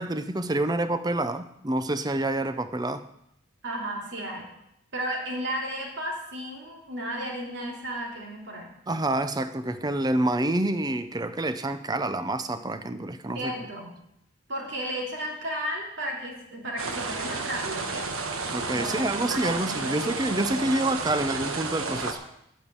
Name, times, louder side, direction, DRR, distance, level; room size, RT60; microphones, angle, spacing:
voice 1, 0.0-3.0 8.9-13.5 18.5-22.2, right 1 dB, 20° right, 11 dB, 0.6 m, -27 dB
voice 2, 3.6-4.5 4.9-8.7 13.3-13.9 14.5-18.3 18.7-20.1, right 1 dB, 55° right, -1 dB, 2.9 m, -34 dB
sound 1, 16.8-22.1, right 3 dB, 85° right, 1.3 m, -32 dB
9.3 x 7.1 x 8.6 m, 0.79 s
head